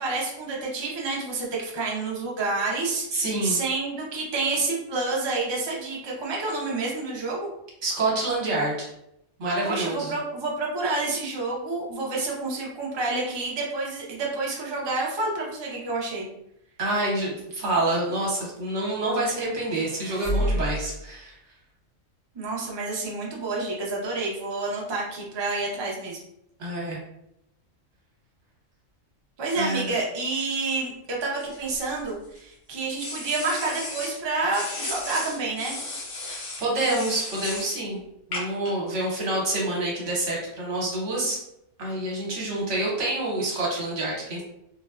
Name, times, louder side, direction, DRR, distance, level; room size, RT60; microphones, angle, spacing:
voice 1, 0.0-7.5 9.6-16.3 22.3-26.2 29.4-35.8, right 3 dB, 45° right, -3 dB, 0.3 m, -29 dB
voice 2, 3.1-3.6 7.8-8.9 9.4-10.2 16.8-21.3 26.6-27.0 29.6-29.9 36.2-38.0 38.3-41.4 41.8-44.4, right 2 dB, 65° right, -3 dB, 1.2 m, -27 dB
sound 1, 19.4-21.2, equal, 75° left, 1.6 m, -29 dB
sound 2, 31.4-32.4 33.0-34.2 34.5-37.7 38.3-38.7, left 2 dB, 50° left, 0.9 m, -35 dB
3.3 x 2.1 x 2.3 m, 0.80 s
omnidirectional pair, 1.3 m